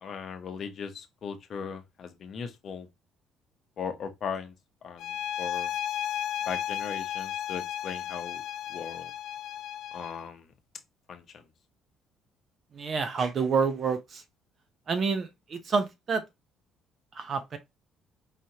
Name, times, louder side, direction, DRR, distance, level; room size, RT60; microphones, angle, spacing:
voice 1, 0.0-2.9 3.8-4.5 4.8-5.7 6.5-8.4 8.7-9.1 9.9-10.5 11.1-11.5, left 6 dB, 45° left, 0.8 m, -38 dB
sound 1, 5.0-10.3, left 10 dB, 60° left, 0.3 m, -34 dB
voice 2, 12.7-14.2 14.9-16.2 17.1-17.6, right 5 dB, 35° right, 0.7 m, -28 dB
4.9 x 2.9 x 2.8 m
cardioid pair, 155°, 0 cm